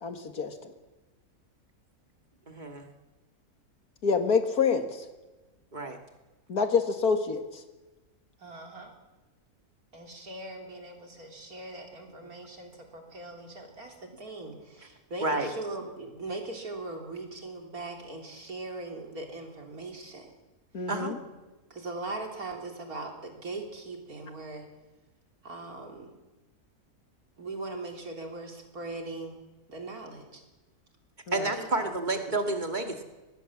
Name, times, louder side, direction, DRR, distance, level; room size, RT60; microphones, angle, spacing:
voice 1, 0.0-0.5 4.0-5.1 6.5-7.6 20.7-21.2 31.3-31.5, left 5 dB, 75° left, 7 dB, 2.3 m, -27 dB
voice 2, 2.5-2.9 5.7-6.0 14.5-14.6 15.2-15.5 20.9-21.3 31.3-33.0, right 2 dB, 30° right, 5 dB, 2.2 m, -30 dB
voice 3, 8.4-8.9 9.9-20.3 21.7-24.7 25.4-26.1 27.4-29.4 29.7-30.4 31.6-32.0, right 2 dB, 70° right, 2 dB, 3.8 m, -40 dB
23.5 x 19.5 x 7.4 m, 1.1 s
omnidirectional pair, 1.6 m